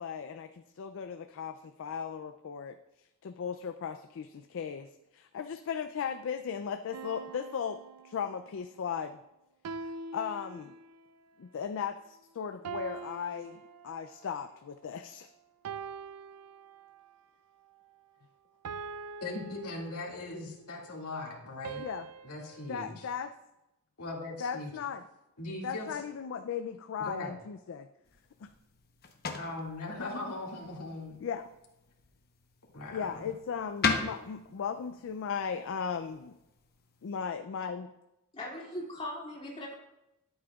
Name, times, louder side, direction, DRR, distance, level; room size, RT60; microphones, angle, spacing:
voice 1, 0.0-2.8 3.2-9.2 10.1-10.7 11.4-15.3 21.8-22.1 22.7-23.3 24.4-25.0 25.6-27.9 28.4-28.5 31.2-31.5 32.9-36.3 37.0-37.9, left 7 dB, 60° left, 8 dB, 0.4 m, -37 dB
sound 1, 6.9-8.6 9.6-11.2 12.6-14.3 15.6-17.2 18.6-20.4 21.6-22.7, right 5 dB, 85° right, 0.4 m, -44 dB
voice 2, 19.2-21.9 22.2-23.1 24.0-24.7 25.4-25.9 27.0-27.3 29.3-31.2 32.7-33.3, left 2 dB, 90° left, -3 dB, 2.1 m, -39 dB
sound 2, 28.0-37.2, left 4 dB, 45° left, 0.9 m, -39 dB
voice 3, 38.3-39.7, left 1 dB, 25° left, -5 dB, 2.5 m, -39 dB
12.5 x 7.8 x 2.4 m, 0.93 s
head